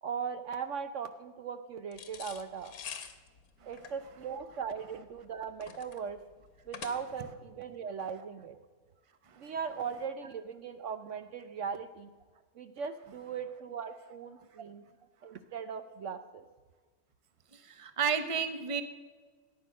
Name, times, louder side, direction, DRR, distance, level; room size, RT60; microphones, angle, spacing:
voice 1, 0.0-2.7 3.7-6.2 6.7-8.6 9.4-12.1 12.6-14.8 15.2-16.5, right 6 dB, 65° right, 9 dB, 1.0 m, -39 dB
sound 1, 1.9-7.3, left 7 dB, 85° left, 1.6 m, -47 dB
voice 2, 17.5-18.8, right 7 dB, 25° right, 9 dB, 0.9 m, -32 dB
14.0 x 9.7 x 6.4 m, 1.4 s
omnidirectional pair, 1.5 m